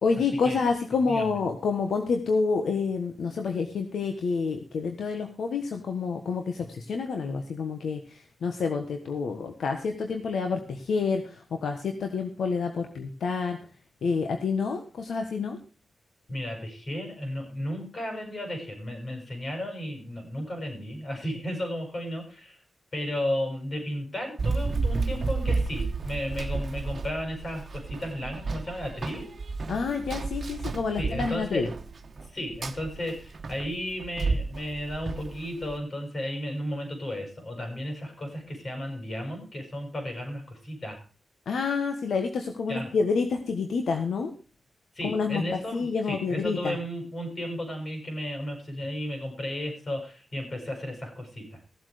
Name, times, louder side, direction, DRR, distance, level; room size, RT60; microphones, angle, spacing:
voice 1, 0.0-13.6 14.0-15.6 29.7-31.7 41.5-44.3 45.0-46.8, left 5 dB, 85° left, 5 dB, 1.3 m, -28 dB
voice 2, 1.1-1.4 16.3-22.6 22.9-29.3 30.9-31.7 32.2-41.0 42.7-43.0 44.9-51.6, equal, 50° left, 3 dB, 6.8 m, -34 dB
Run, 24.4-35.8, right 3 dB, 55° right, 1.2 m, -32 dB
15.5 x 7.9 x 4.9 m, 0.36 s
cardioid pair, 65°, 0 cm